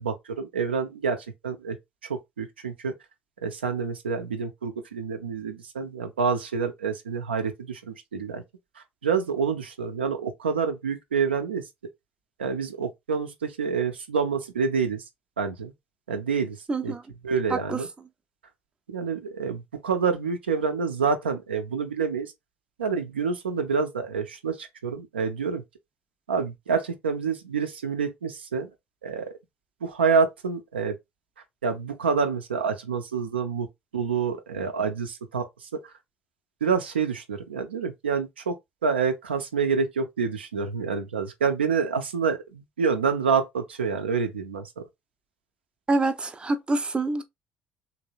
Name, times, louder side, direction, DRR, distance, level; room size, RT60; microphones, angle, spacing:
voice 1, 0.0-1.8 2.1-2.9 3.4-8.4 8.8-11.6 12.4-15.0 15.4-15.7 16.1-16.6 16.8-16.9 17.2-17.9 18.9-22.3 22.8-25.6 26.3-28.7 29.0-29.3 29.8-31.0 31.6-33.7 33.9-35.9 36.6-38.6 38.8-44.9, right 5 dB, 80° right, 0.4 m, -27 dB
voice 2, 16.7-17.0 17.5-17.8 45.9-47.2, right 2 dB, 15° right, 0.4 m, -26 dB
3.0 x 2.6 x 2.5 m
figure-of-eight pair, 55°, 6 cm